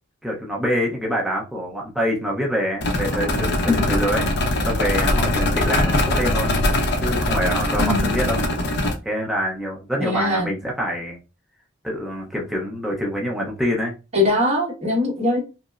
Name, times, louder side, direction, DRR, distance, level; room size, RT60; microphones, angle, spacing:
voice 1, 0.2-4.3 4.6-6.6 7.0-8.4 9.0-11.2 11.8-13.9, equal, ahead, -3 dB, 0.7 m, -25 dB
sound 1, 2.8-8.9, left 1 dB, 55° left, 0.7 m, -21 dB
voice 2, 3.6-3.9 7.8-8.1 10.0-10.5 14.1-15.4, left 2 dB, 30° right, -2 dB, 1.2 m, -21 dB
5.0 x 2.0 x 2.4 m, 0.30 s
head